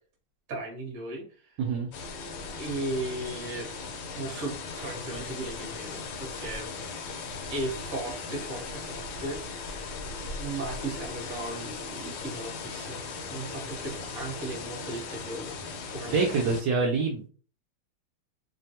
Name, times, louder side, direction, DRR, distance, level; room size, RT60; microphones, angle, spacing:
voice 1, 0.5-1.6 2.6-3.7 4.1-6.7 7.5-9.7 10.4-15.5 15.9-16.4, right 2 dB, 50° right, 0 dB, 1.3 m, -36 dB
voice 2, 1.6-1.9 16.1-17.3, right 4 dB, 70° right, 0 dB, 1.1 m, -26 dB
sound 1, 1.9-16.6, left 4 dB, 75° left, 1.3 m, -38 dB
3.3 x 2.2 x 2.7 m, 0.42 s
omnidirectional pair, 2.3 m